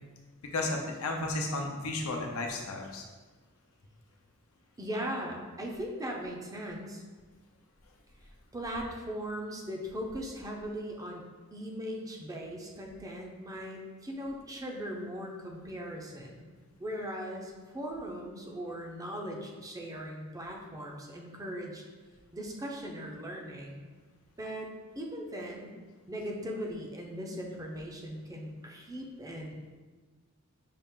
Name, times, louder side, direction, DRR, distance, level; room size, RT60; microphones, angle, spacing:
voice 1, 0.5-3.0, left 2 dB, 75° left, 1 dB, 0.7 m, -33 dB
voice 2, 4.8-7.0 8.5-11.2 11.5-16.5 16.8-21.8 22.3-23.8 24.4-25.8 26.1-29.7, equal, 15° right, 0 dB, 0.5 m, -39 dB
5.5 x 2.5 x 3.6 m, 1.3 s
head